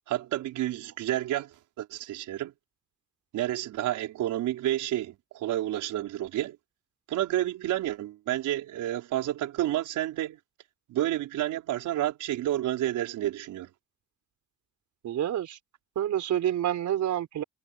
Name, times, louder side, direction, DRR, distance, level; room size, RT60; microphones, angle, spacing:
voice 1, 0.1-2.5 3.3-6.6 7.1-10.4 10.9-13.7, right 13 dB, 85° right, 4.9 m, -30 dB
voice 2, 15.0-15.6 16.0-17.4, right 11 dB, 70° right, 4.4 m, -28 dB
cardioid pair, 90°, 30 cm